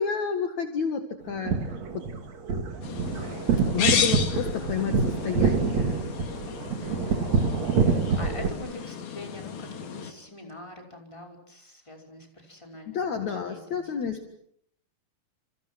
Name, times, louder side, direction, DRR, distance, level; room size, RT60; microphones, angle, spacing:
voice 1, 0.0-2.0 2.5-2.6 3.7-6.0 12.9-14.3, left 7 dB, 55° left, 6 dB, 2.9 m, -30 dB
sound 1, 1.3-8.5, right 5 dB, 50° right, 3.5 m, -26 dB
sound 2, 2.8-10.1, left 7 dB, 80° left, 4.2 m, -33 dB
voice 2, 6.8-7.3 7.7-14.2, left 1 dB, 10° left, 2 dB, 5.4 m, -44 dB
29.5 x 29.0 x 6.1 m, 0.68 s
omnidirectional pair, 4.2 m